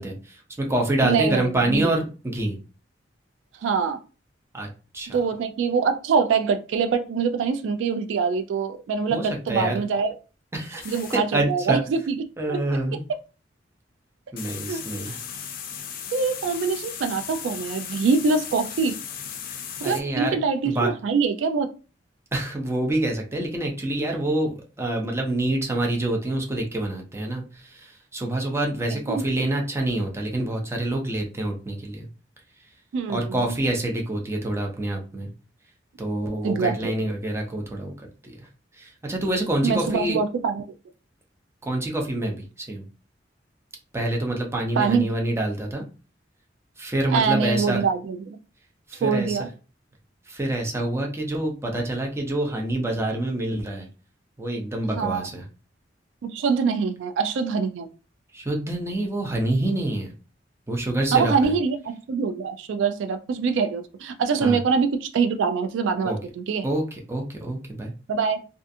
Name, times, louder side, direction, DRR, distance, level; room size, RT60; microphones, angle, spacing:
voice 1, 0.0-2.6 4.5-4.7 4.9-5.2 9.1-9.8 10.5-11.8 12.4-13.0 14.3-15.1 19.8-20.4 20.6-20.9 22.3-32.1 33.1-35.3 36.0-37.9 38.2-38.5 38.8-40.2 41.6-42.8 43.9-45.8 46.8-47.8 48.9-49.4 50.3-53.9 54.4-55.4 58.3-60.1 60.7-61.5 64.4-64.6 66.0-66.2 66.6-67.9, right 1 dB, 15° right, 1 dB, 0.5 m, -26 dB
voice 2, 1.0-2.0 3.6-4.0 5.1-10.1 10.9-12.6 14.7-14.8 16.1-19.0 19.8-21.7 29.1-29.2 32.9-33.5 36.4-36.9 39.6-40.6 44.8-45.1 47.1-48.4 49.0-49.5 54.9-55.3 56.2-57.9 61.1-66.7 68.1-68.5, right 5 dB, 80° right, 8 dB, 0.3 m, -24 dB
sound 1, 10.8-11.2 14.4-20.0, left 8 dB, 50° left, 0.4 m, -36 dB
2.4 x 2.4 x 2.6 m, 0.34 s
head